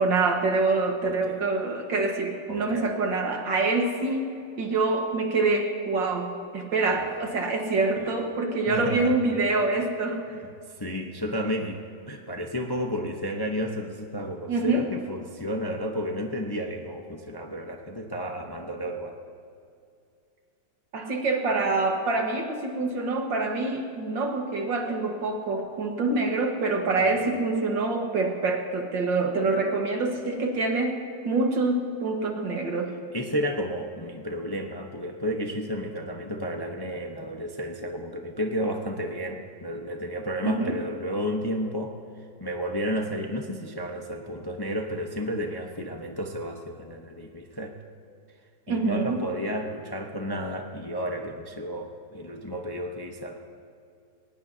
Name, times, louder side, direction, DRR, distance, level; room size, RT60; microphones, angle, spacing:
voice 1, 0.0-4.3 4.6-10.3 14.5-14.9 20.9-31.0 31.2-32.9 40.4-40.7 48.7-49.2, right 3 dB, 80° right, 2 dB, 2.3 m, -26 dB
voice 2, 1.0-1.4 2.5-2.9 6.9-7.2 8.0-8.1 8.7-9.1 10.3-19.2 27.0-27.3 33.1-42.0 42.4-47.8 48.7-53.4, equal, 20° left, 2 dB, 0.7 m, -32 dB
21.5 x 19.0 x 2.9 m, 2.4 s
omnidirectional pair, 2.0 m